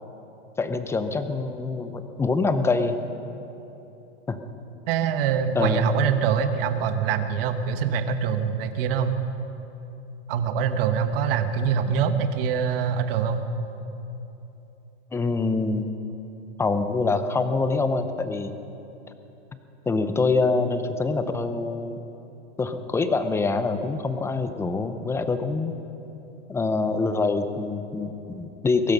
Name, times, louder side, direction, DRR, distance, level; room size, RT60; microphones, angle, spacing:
voice 1, 0.6-3.0 4.3-4.4 5.5-5.8 15.1-15.9 16.6-18.6 19.9-22.0 22.6-25.7 26.5-28.9, left 3 dB, 10° left, 9 dB, 0.6 m, -25 dB
voice 2, 4.9-9.2 10.3-13.4, right 7 dB, 55° right, 8 dB, 1.3 m, -24 dB
21.5 x 12.5 x 5.4 m, 3.0 s
supercardioid pair, 140°, 34 cm